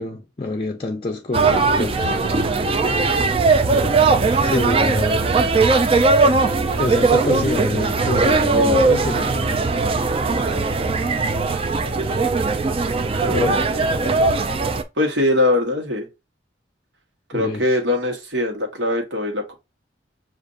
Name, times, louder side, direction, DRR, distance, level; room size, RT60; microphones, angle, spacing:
voice 1, 0.0-2.1 4.4-5.3 6.8-9.7 13.3-13.6 17.3-17.8, left 2 dB, 30° left, 0.5 m, -27 dB
sound 1, 1.3-14.8, right 3 dB, 30° right, 0.4 m, -19 dB
voice 2, 13.2-13.8 15.0-16.1 17.3-19.5, left 2 dB, 75° right, 1.2 m, -22 dB
6.5 x 2.5 x 2.5 m
head